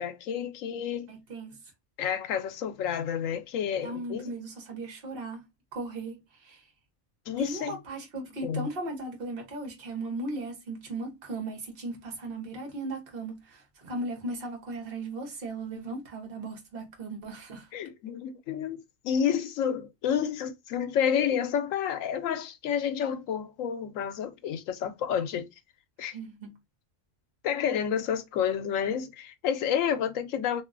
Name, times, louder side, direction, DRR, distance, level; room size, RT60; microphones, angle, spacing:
voice 1, 0.0-1.1 2.0-4.3 7.3-7.8 8.4-8.7 17.7-25.5 26.0-26.1 27.4-30.6, left 8 dB, 80° left, 1.0 m, -30 dB
voice 2, 1.1-1.6 3.8-5.4 5.7-6.6 7.4-17.7 26.1-26.6, right 2 dB, 50° right, 1.2 m, -37 dB
2.9 x 2.7 x 2.4 m
omnidirectional pair, 1.4 m